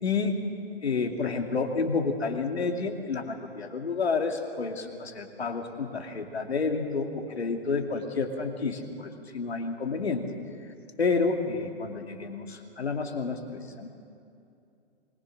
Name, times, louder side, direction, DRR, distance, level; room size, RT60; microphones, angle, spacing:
voice 1, 0.0-0.4 0.8-10.3 11.0-13.9, left 4 dB, 80° left, 4 dB, 2.7 m, -30 dB
24.0 x 21.5 x 6.4 m, 2.5 s
hypercardioid pair, 120°, 31 cm